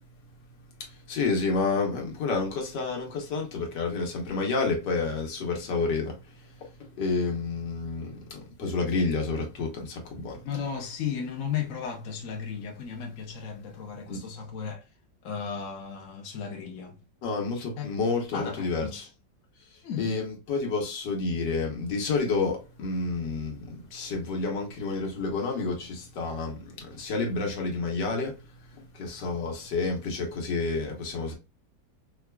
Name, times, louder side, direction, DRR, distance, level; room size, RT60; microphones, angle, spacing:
voice 1, 0.8-10.4 14.1-14.2 17.2-19.1 20.0-31.3, left 3 dB, 70° left, 1.6 m, -30 dB
voice 2, 10.4-14.9 15.2-17.0 17.8-17.9 18.3-19.1 19.8-20.1, left 7 dB, 55° left, 1.1 m, -35 dB
4.9 x 2.3 x 2.2 m
omnidirectional pair, 2.0 m